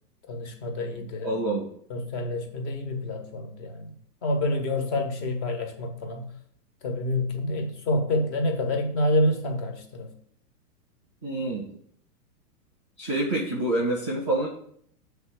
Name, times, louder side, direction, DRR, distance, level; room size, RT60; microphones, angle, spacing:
voice 1, 0.3-1.3 1.9-3.9 4.2-6.3 6.8-10.1, left 1 dB, 45° left, 5 dB, 1.4 m, -28 dB
voice 2, 1.2-1.7 11.2-11.8 13.0-14.5, right 2 dB, 20° left, -7 dB, 0.3 m, -27 dB
7.3 x 3.5 x 6.3 m, 0.65 s
hypercardioid pair, 165°, 47 cm